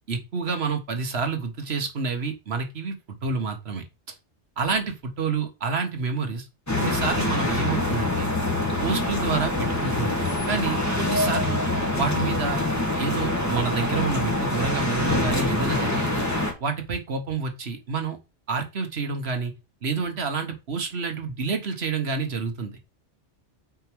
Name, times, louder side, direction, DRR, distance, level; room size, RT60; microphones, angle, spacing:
voice 1, 0.1-4.1 4.6-6.5 6.8-8.3 8.8-11.6 12.0-12.6 13.0-16.2 16.6-18.2 18.5-19.5 19.8-22.8, right 4 dB, 65° right, 5 dB, 1.3 m, -28 dB
sound 1, 6.7-16.5, left 2 dB, 15° left, 1.5 m, -25 dB
4.7 x 4.5 x 5.9 m, 0.27 s
omnidirectional pair, 1.2 m